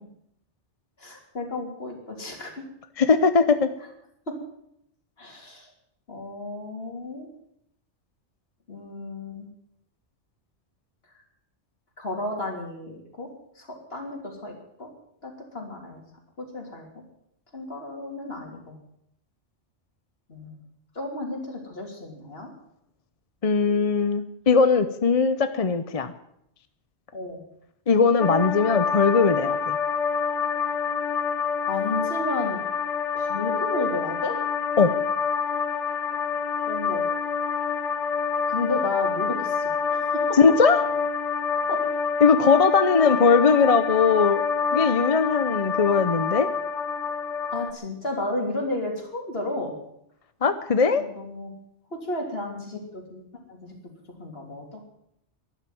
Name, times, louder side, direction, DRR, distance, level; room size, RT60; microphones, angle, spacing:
voice 1, 1.0-2.5 4.3-4.4 5.2-5.7 6.1-7.3 8.7-9.5 12.0-13.3 13.6-14.9 15.2-16.0 16.4-16.9 17.5-18.8 20.3-20.5 21.0-22.5 27.1-27.4 31.7-32.6 33.1-34.4 36.7-37.0 38.5-40.4 41.7-41.8 47.5-49.7 51.0-51.5 51.9-53.8 54.2-54.9, left 2 dB, 55° left, 2 dB, 3.4 m, -33 dB
voice 2, 3.0-3.7 23.4-26.1 27.9-29.8 34.8-34.9 40.4-40.8 42.2-44.4 44.7-46.5 50.4-51.0, left 5 dB, 35° left, 10 dB, 0.7 m, -20 dB
sound 1, 28.2-47.7, left 6 dB, 85° left, 1.3 m, -27 dB
12.5 x 11.5 x 9.1 m, 0.76 s
omnidirectional pair, 1.2 m